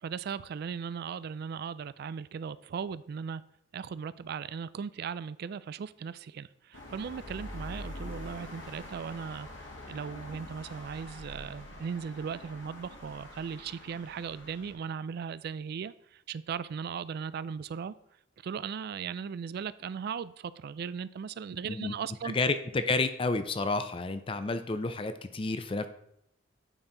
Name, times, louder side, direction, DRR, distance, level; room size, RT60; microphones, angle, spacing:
voice 1, 0.0-3.4 3.7-9.5 9.9-17.9 18.4-22.4, right 6 dB, 55° right, 17 dB, 0.3 m, -38 dB
sound 1, 6.7-14.7, left 1 dB, 70° left, 1.5 m, -45 dB
voice 2, 22.3-25.9, left 3 dB, 30° left, 10 dB, 0.5 m, -30 dB
8.9 x 4.5 x 3.8 m, 0.74 s
head